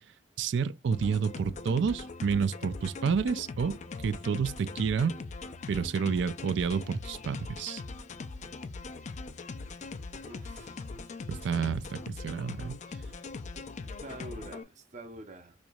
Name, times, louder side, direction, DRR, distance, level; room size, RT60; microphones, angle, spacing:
voice 1, 0.4-5.1 5.7-7.8 11.3-12.8, right 6 dB, 70° right, 0.3 m, -29 dB
sound 1, 0.9-14.6, left 3 dB, 40° left, 0.4 m, -41 dB
voice 2, 10.2-10.8 13.8-15.5, right 1 dB, 40° right, 0.7 m, -46 dB
4.3 x 2.9 x 2.3 m
head